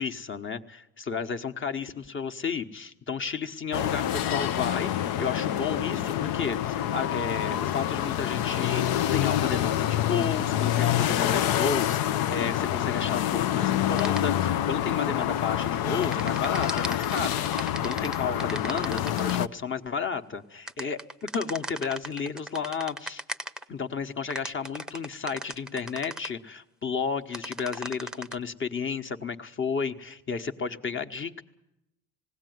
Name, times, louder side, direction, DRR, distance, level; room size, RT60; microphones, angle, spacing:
voice 1, 0.0-21.0 21.3-23.2 23.7-31.4, left 5 dB, 30° left, 9 dB, 1.2 m, -32 dB
sound 1, 3.7-19.5, left 11 dB, 75° left, 0.8 m, -27 dB
sound 2, 14.0-14.2 16.0-19.4 20.7-23.6 24.3-26.3 27.3-28.3, right 1 dB, ahead, 0.7 m, -37 dB
19.5 x 17.0 x 9.4 m, 0.85 s
cardioid pair, 120°, 37 cm